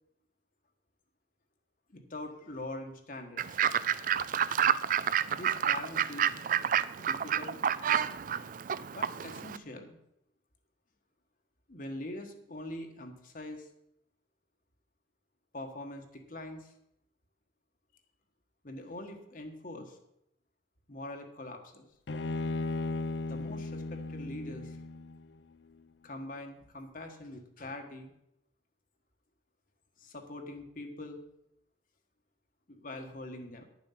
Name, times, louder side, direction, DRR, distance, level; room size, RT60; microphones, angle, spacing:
voice 1, 1.9-3.6 5.3-6.3 7.0-7.6 8.9-10.0 11.7-13.7 15.5-16.7 18.6-20.0 20.9-21.8 23.3-24.8 26.0-28.1 30.0-31.2 32.7-33.6, left 1 dB, 45° left, 4 dB, 1.3 m, -43 dB
Fowl / Bird, 3.4-9.6, right 9 dB, 45° right, 0.3 m, -29 dB
Bowed string instrument, 22.1-25.4, left 2 dB, 60° left, 0.5 m, -36 dB
10.5 x 7.3 x 5.8 m, 0.79 s
head